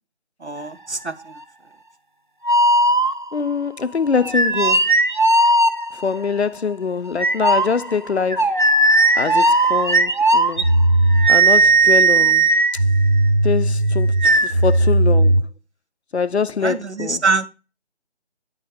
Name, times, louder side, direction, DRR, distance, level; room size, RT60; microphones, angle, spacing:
voice 1, 0.4-1.1 16.6-17.5, right 4 dB, 70° right, 1.3 m, -23 dB
sound 1, 2.4-3.5 4.2-6.2 7.2-15.4, right 2 dB, 45° right, 0.7 m, -16 dB
voice 2, 3.3-4.9 5.9-8.5 9.2-10.7 11.3-12.5 13.4-15.3 16.1-17.2, left 5 dB, 65° left, 0.6 m, -23 dB
9.6 x 5.1 x 4.8 m
figure-of-eight pair, 165°, 35 cm